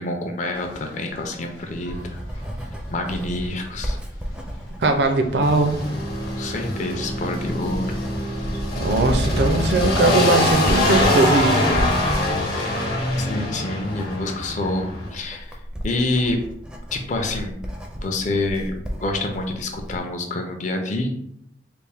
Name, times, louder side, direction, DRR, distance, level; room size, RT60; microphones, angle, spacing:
voice 1, 0.0-2.0 2.9-4.0 6.4-8.0 13.2-15.6 15.8-16.4 16.9-17.6 18.0-18.7 19.0-21.1, left 2 dB, 45° left, 4 dB, 0.5 m, -27 dB
sound 1, 0.5-10.0, left 1 dB, 85° left, 0.9 m, -35 dB
Writing, 1.4-20.0, equal, 5° right, 0.4 m, -34 dB
voice 2, 4.8-5.8 8.8-11.8, right 2 dB, 65° right, 5 dB, 0.5 m, -20 dB
sound 2, 5.4-15.1, left 1 dB, 60° left, 1.0 m, -24 dB
3.4 x 2.5 x 3.4 m, 0.72 s
head